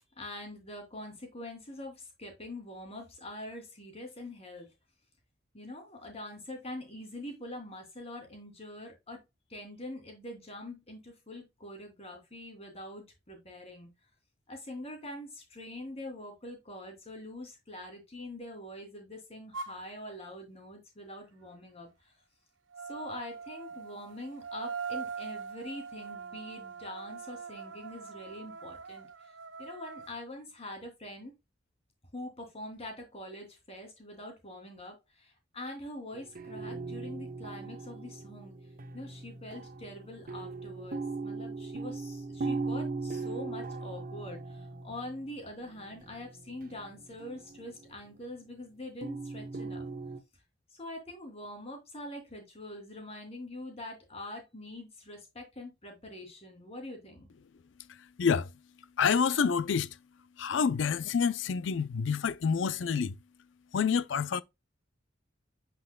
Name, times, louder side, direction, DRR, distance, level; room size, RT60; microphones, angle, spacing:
voice 1, 0.2-4.7 5.5-9.2 9.5-13.9 14.5-22.1 22.9-29.1 29.6-31.3 32.1-38.5 38.9-49.9 50.7-57.3, left 1 dB, 35° left, 2.9 m, -44 dB
sound 1, 19.5-19.8 22.7-30.1, right 5 dB, 85° right, 0.6 m, -42 dB
sound 2, 36.1-47.9 49.0-50.2, right 3 dB, 50° right, 0.8 m, -39 dB
voice 2, 59.0-59.9 60.4-63.1 63.7-64.4, left 6 dB, 70° left, 0.4 m, -27 dB
7.5 x 5.9 x 2.2 m
head